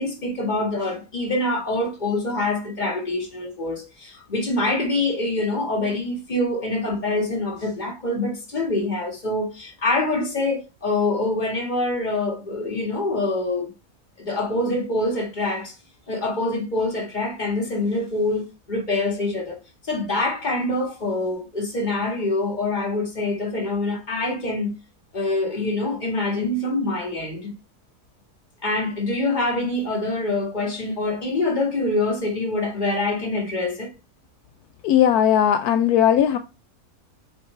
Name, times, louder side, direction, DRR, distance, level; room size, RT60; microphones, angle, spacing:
voice 1, 0.0-13.7 14.2-15.7 16.1-19.6 19.8-24.7 25.1-27.5 28.6-33.9, left 2 dB, 30° left, 2.0 m, -25 dB
voice 2, 34.8-36.4, left 10 dB, 75° left, 1.1 m, -18 dB
7.5 x 4.7 x 3.3 m
omnidirectional pair, 1.7 m